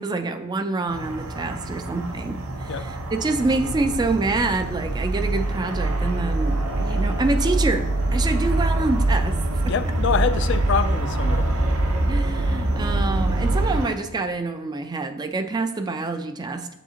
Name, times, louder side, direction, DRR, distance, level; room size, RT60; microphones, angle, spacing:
voice 1, 0.0-9.4 9.6-9.7 12.1-16.7, right 3 dB, 20° right, 0.3 m, -26 dB
sound 1, 0.9-14.0, right 1 dB, 85° right, 0.8 m, -32 dB
sound 2, 3.4-13.8, right 2 dB, 50° right, 0.7 m, -24 dB
voice 2, 9.6-11.5 12.5-12.6, left 6 dB, 55° left, 0.4 m, -25 dB
7.2 x 6.9 x 2.8 m
head